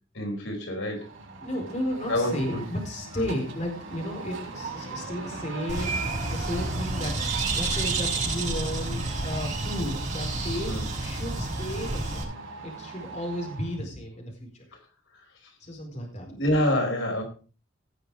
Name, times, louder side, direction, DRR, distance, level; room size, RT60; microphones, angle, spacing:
voice 1, 0.1-1.1 2.1-2.6 3.2-3.3 10.7-10.8 16.2-17.2, left 1 dB, 70° left, 2 dB, 4.4 m, -27 dB
sound 1, 1.0-13.8, right 4 dB, 75° right, 5.0 m, -40 dB
voice 2, 1.4-14.6 15.6-16.3, equal, 35° left, 0 dB, 4.5 m, -34 dB
Bird, 5.7-12.2, right 2 dB, 40° right, 6.0 m, -30 dB
18.5 x 6.8 x 4.9 m, 0.37 s
head